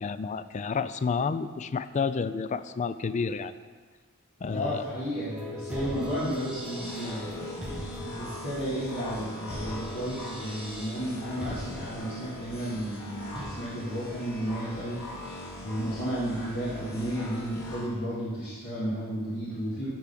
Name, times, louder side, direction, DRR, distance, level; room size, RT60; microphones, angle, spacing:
voice 1, 0.0-3.5 4.4-4.9, left 5 dB, 30° left, 13 dB, 0.3 m, -30 dB
voice 2, 4.5-15.0 15.6-19.9, equal, 60° left, -12 dB, 3.3 m, -33 dB
sound 1, 5.3-13.7, left 1 dB, 5° right, 1.2 m, -41 dB
sound 2, 6.8-17.9, equal, 80° left, 3.1 m, -41 dB
12.0 x 4.8 x 5.8 m, 1.6 s
head